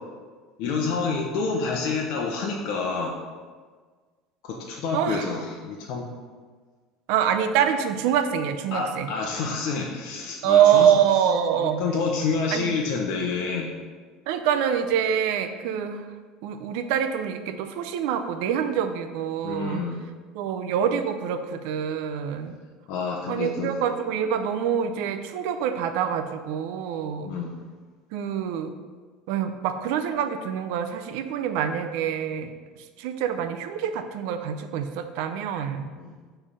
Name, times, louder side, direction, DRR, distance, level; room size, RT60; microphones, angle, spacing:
voice 1, 0.6-3.1 4.4-6.1 8.7-10.9 11.6-13.7 19.4-20.0 22.9-23.7 27.3-27.5 36.0-36.1, left 4 dB, 70° left, -1 dB, 0.8 m, -28 dB
voice 2, 4.9-5.3 7.1-9.1 10.4-11.8 12.5-12.7 14.3-16.1 16.4-19.8 20.3-22.6 23.3-27.3 28.1-28.8 29.3-32.5 33.0-35.9, right 9 dB, 75° right, 8 dB, 0.5 m, -25 dB
7.3 x 3.4 x 5.6 m, 1.5 s
cardioid pair, 130°, 0 cm